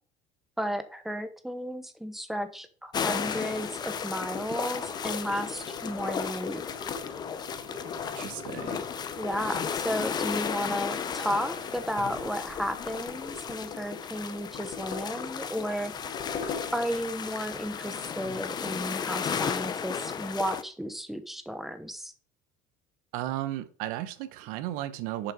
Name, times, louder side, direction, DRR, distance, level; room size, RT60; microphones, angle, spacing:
voice 1, 0.6-6.6 9.2-15.9 16.7-22.1, equal, ahead, 0.9 m, -33 dB
sound 1, 2.9-20.6, left 7 dB, 30° left, 0.7 m, -34 dB
sound 2, 3.0-17.1, left 5 dB, 50° left, 2.1 m, -42 dB
voice 2, 8.2-8.8 23.1-25.3, right 13 dB, 75° right, 1.0 m, -34 dB
7.2 x 5.4 x 5.0 m
cardioid pair, 135°, 15 cm